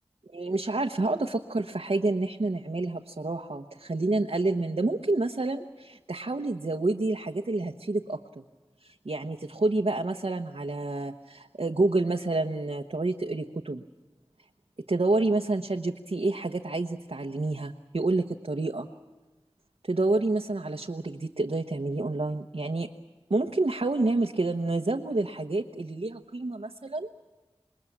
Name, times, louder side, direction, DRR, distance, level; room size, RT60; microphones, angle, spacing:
voice 1, 0.3-8.4 8.8-13.8 14.9-18.9 19.8-22.9 23.3-27.1, right 2 dB, 80° right, 2 dB, 1.0 m, -28 dB
27.0 x 21.0 x 7.3 m, 1.2 s
wide cardioid pair, 40°, 10 cm